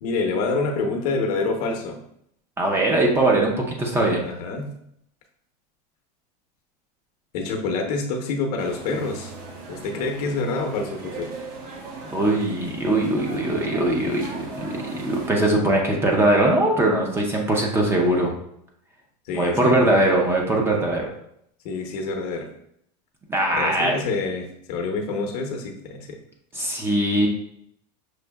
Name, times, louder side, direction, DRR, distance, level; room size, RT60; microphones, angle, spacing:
voice 1, 0.0-2.0 4.2-4.7 7.3-9.3 9.7-11.3 19.3-19.9 21.6-22.5 23.5-26.1, left 3 dB, 65° left, 4 dB, 0.7 m, -27 dB
voice 2, 2.6-4.2 12.1-18.3 19.3-21.1 23.3-24.0 26.5-27.3, right 1 dB, 10° right, 0 dB, 0.4 m, -21 dB
sound 1, 8.6-15.3, right 3 dB, 65° right, 1.0 m, -39 dB
6.2 x 2.6 x 2.2 m, 0.72 s
supercardioid pair, 160°, 21 cm